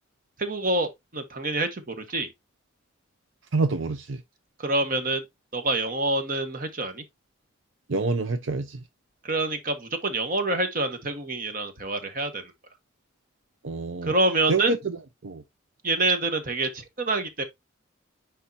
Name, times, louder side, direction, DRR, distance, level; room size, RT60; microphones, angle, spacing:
voice 1, 0.4-2.3 4.6-5.2 5.5-7.0 9.2-12.5 14.0-14.8 15.8-17.4, right 2 dB, 45° right, 1.3 m, -26 dB
voice 2, 3.5-4.2 7.9-8.8 13.6-14.1 14.5-15.4, right 3 dB, 75° right, 0.7 m, -27 dB
9.9 x 3.7 x 2.6 m
head